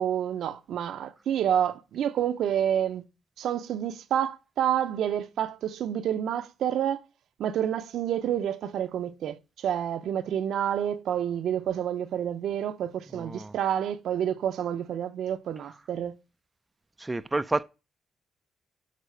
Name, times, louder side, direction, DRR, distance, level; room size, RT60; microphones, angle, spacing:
voice 1, 0.0-3.0 3.4-7.0 7.4-16.2, right 10 dB, 75° right, 0.6 m, -29 dB
voice 2, 13.1-13.6 15.7-15.8 17.0-17.6, right 2 dB, 15° right, 0.4 m, -30 dB
6.6 x 4.2 x 6.5 m
cardioid pair, 90°, 0 cm